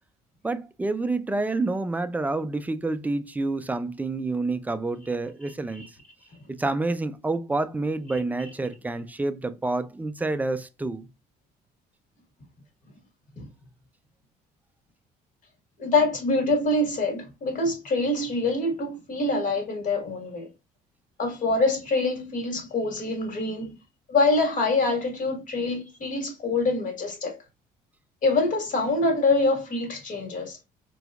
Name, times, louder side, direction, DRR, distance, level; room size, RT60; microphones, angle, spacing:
voice 1, 0.4-5.9 6.5-11.1, right 2 dB, 10° right, 0.3 m, -28 dB
voice 2, 15.8-20.5 21.2-23.7 24.1-27.4 28.2-30.6, left 2 dB, 50° left, 1.6 m, -25 dB
4.2 x 2.3 x 2.3 m
cardioid pair, 110°, 17 cm